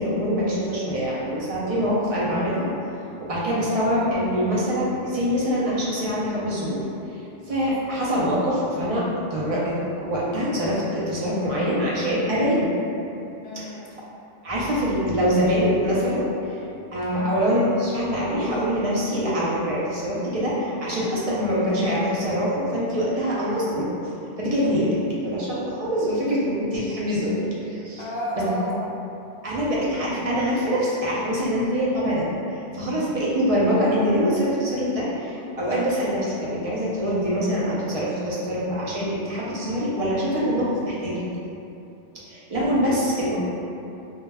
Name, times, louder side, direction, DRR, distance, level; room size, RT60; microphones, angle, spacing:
voice 1, 0.0-2.7 3.3-9.0 9.3-12.7 14.4-16.6 16.9-23.9 24.4-24.9 25.2-28.0 28.4-28.5 29.4-41.2 42.1-43.4, equal, 60° right, -7 dB, 0.4 m, -24 dB
voice 2, 13.4-13.9 17.1-17.3 28.0-29.0 42.6-42.9, equal, 75° left, -5 dB, 0.8 m, -32 dB
2.1 x 2.1 x 3.2 m, 2.8 s
omnidirectional pair, 1.1 m